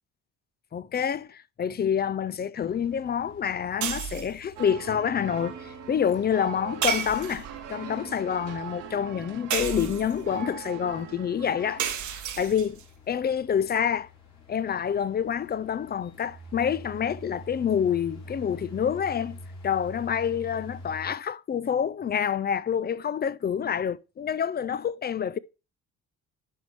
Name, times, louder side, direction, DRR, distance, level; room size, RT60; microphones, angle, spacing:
voice 1, 0.7-11.8 12.4-12.8 13.1-14.1 14.5-19.4 19.6-25.4, left 8 dB, 35° left, 0.4 m, -27 dB
sound 1, 2.6-21.1, left 1 dB, 65° left, 3.3 m, -48 dB
sound 2, 3.8-4.4 6.8-7.7 9.5-10.3 11.8-12.8, right 8 dB, 70° right, 1.1 m, -31 dB
sound 3, 4.6-11.9, right 9 dB, 90° right, 1.7 m, -41 dB
10.5 x 3.6 x 4.6 m
cardioid pair, 90°, 30 cm